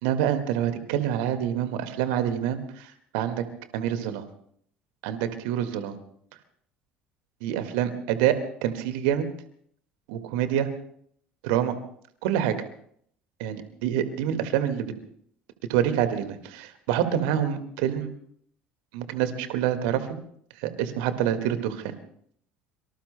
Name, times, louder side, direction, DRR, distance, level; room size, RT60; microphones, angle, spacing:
voice 1, 0.0-3.4 3.7-4.2 5.0-6.0 7.4-9.3 10.1-10.7 11.4-11.7 12.2-12.6 13.4-14.9 15.7-18.1 18.9-20.2 20.6-21.9, right 10 dB, 65° right, 8 dB, 1.8 m, -26 dB
25.5 x 24.0 x 2.2 m, 0.65 s
figure-of-eight pair, 60°, 6 cm